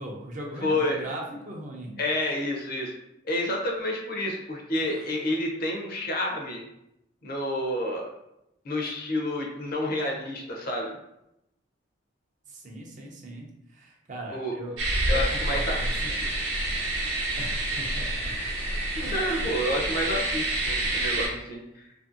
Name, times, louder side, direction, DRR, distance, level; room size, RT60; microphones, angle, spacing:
voice 1, 0.0-2.0 4.8-5.2 12.5-14.8 15.1-16.1 17.4-18.4 19.0-19.5, right 1 dB, 40° right, -1 dB, 0.4 m, -39 dB
voice 2, 0.6-1.0 2.0-2.9 3.3-6.6 7.2-8.1 8.6-11.0 14.3-14.5 15.1-16.3 19.0-21.9, left 1 dB, 50° left, 0 dB, 0.5 m, -29 dB
sound 1, 14.8-21.3, right 2 dB, 75° right, 0.7 m, -28 dB
2.7 x 2.6 x 2.5 m, 0.85 s
head